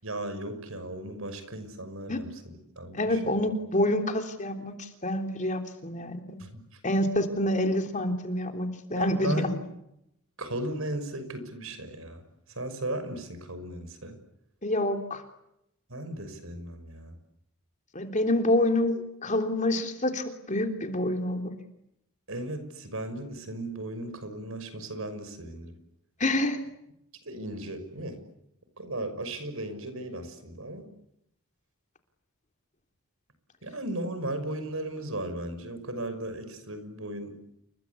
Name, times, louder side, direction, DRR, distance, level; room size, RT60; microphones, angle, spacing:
voice 1, 0.0-3.4 6.4-6.8 9.0-9.5 10.4-12.2 12.5-14.2 15.9-17.1 22.3-25.7 27.2-28.2 28.8-30.9 33.6-37.4, right 1 dB, 70° right, 10 dB, 6.2 m, -36 dB
voice 2, 2.9-6.4 6.8-9.6 14.6-15.2 17.9-21.4 26.2-26.6, left 1 dB, 35° left, 5 dB, 3.4 m, -27 dB
29.5 x 24.0 x 8.5 m, 0.80 s
head